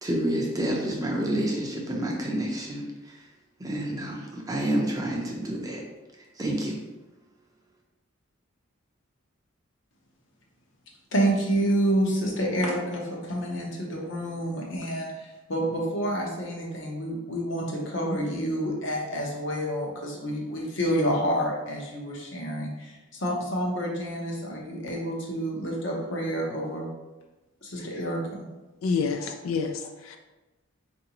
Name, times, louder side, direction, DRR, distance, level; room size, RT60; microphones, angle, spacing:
voice 1, 0.0-3.2 3.6-5.8 6.4-6.8, right 1 dB, 15° right, -1 dB, 0.5 m, -29 dB
voice 2, 11.1-26.9 27.6-28.4, right 1 dB, 60° left, -1 dB, 0.8 m, -28 dB
voice 3, 28.8-30.2, left 5 dB, 75° left, 5 dB, 0.3 m, -28 dB
4.6 x 2.6 x 2.9 m, 1.1 s
head